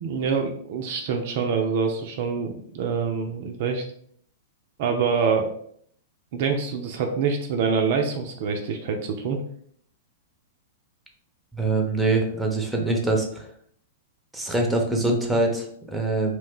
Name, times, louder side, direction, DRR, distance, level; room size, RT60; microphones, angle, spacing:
voice 1, 0.0-3.8 4.8-5.5 6.3-9.4, right 5 dB, 50° right, 4 dB, 0.3 m, -25 dB
voice 2, 11.5-13.5 14.3-16.4, right 2 dB, 5° right, 1 dB, 0.6 m, -24 dB
2.4 x 2.1 x 3.5 m, 0.64 s
figure-of-eight pair, 100°, 0 cm